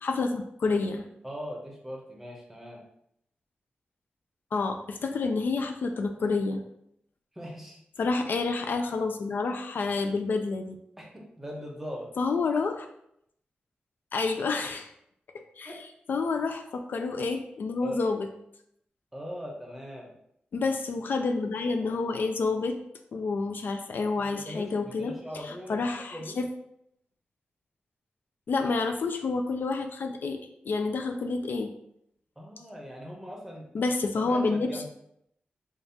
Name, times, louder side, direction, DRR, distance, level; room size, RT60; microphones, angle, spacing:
voice 1, 0.0-1.1 4.5-6.6 8.0-10.8 12.2-12.9 14.1-14.9 15.6-15.7 16.1-18.3 20.5-22.7 23.1-25.1 25.4-26.4 28.5-30.4 30.6-31.7 33.7-34.9, left 4 dB, 65° left, 5 dB, 0.3 m, -29 dB
voice 2, 1.2-2.8 7.3-7.8 11.0-12.1 15.6-15.8 17.8-18.0 19.1-20.1 24.2-25.8 26.1-26.4 32.4-33.7 34.1-34.9, equal, 5° right, -1 dB, 0.8 m, -40 dB
5.2 x 2.4 x 2.7 m, 0.75 s
wide cardioid pair, 150°, 4 cm